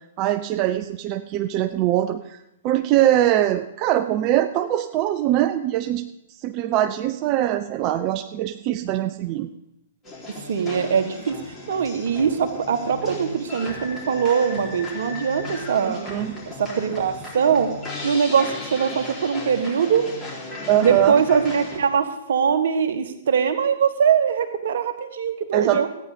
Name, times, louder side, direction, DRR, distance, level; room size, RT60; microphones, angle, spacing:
voice 1, 0.2-2.4 2.6-6.1 6.4-9.5 15.8-16.3 20.7-21.1 25.5-25.8, right 13 dB, 35° right, 10 dB, 0.5 m, -22 dB
sound 1, 10.0-21.8, left 2 dB, 25° left, 4.0 m, -36 dB
voice 2, 10.5-11.4 11.7-16.0 16.6-17.7 18.0-20.1 20.8-25.9, right 7 dB, 60° right, 6 dB, 1.5 m, -22 dB
14.0 x 9.6 x 5.1 m, 0.86 s
figure-of-eight pair, 115°, 0 cm